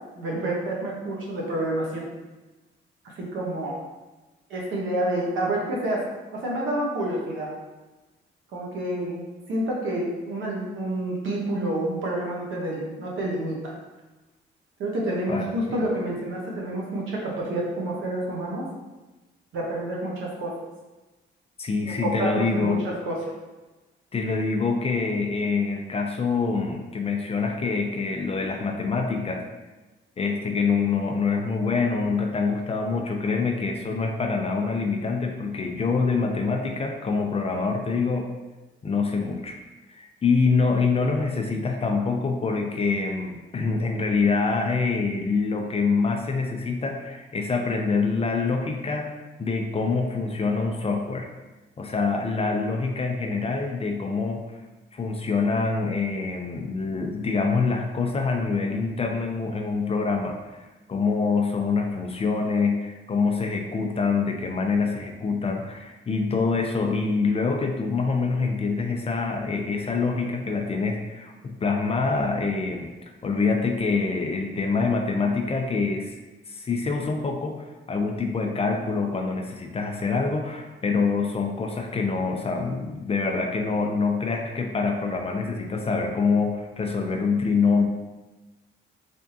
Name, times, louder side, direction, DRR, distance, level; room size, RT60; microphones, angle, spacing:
voice 1, 0.2-2.1 3.0-3.8 4.5-6.0 6.3-7.5 8.5-9.2 9.5-13.7 14.8-18.7 19.5-20.6 21.8-23.1, right 1 dB, 75° right, -2 dB, 1.0 m, -28 dB
voice 2, 15.3-15.8 21.6-22.8 24.1-29.5 30.2-38.3 38.8-39.6 39.9-51.3 51.8-54.6 54.9-76.1 76.5-87.8, left 4 dB, 30° left, 3 dB, 0.5 m, -25 dB
3.5 x 3.4 x 2.8 m, 1.1 s
cardioid pair, 90°, 20 cm